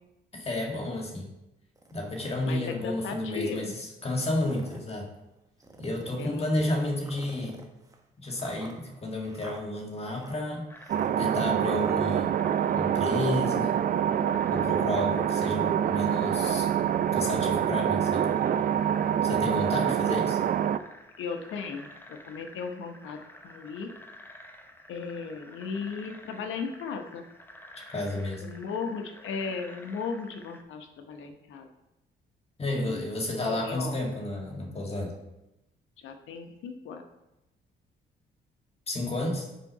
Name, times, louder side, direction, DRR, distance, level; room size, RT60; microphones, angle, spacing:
voice 1, 0.3-1.3 1.9-5.1 5.8-7.6 8.2-10.7 11.2-12.3 12.7-13.8 14.5-16.7 17.1-18.3 19.2-20.4 27.9-28.4 32.6-35.1 38.9-39.5, left 1 dB, 30° left, 1 dB, 1.8 m, -31 dB
sound 1, 1.8-2.5 3.1-3.2 4.2-4.9 5.6-6.4 7.0-12.0, right 2 dB, 15° right, 1.1 m, -49 dB
voice 2, 2.4-3.7 6.2-6.5 21.2-23.2 23.4-23.9 24.9-27.2 28.4-31.7 32.7-33.1 33.4-34.0 36.0-37.0, left 5 dB, 80° left, 5 dB, 1.0 m, -36 dB
sound 2, 10.7-30.6, left 1 dB, 10° left, 0.8 m, -50 dB
sound 3, 10.9-20.8, right 9 dB, 45° right, 0.4 m, -26 dB
5.6 x 4.8 x 5.5 m, 0.90 s
cardioid pair, 90°, 20 cm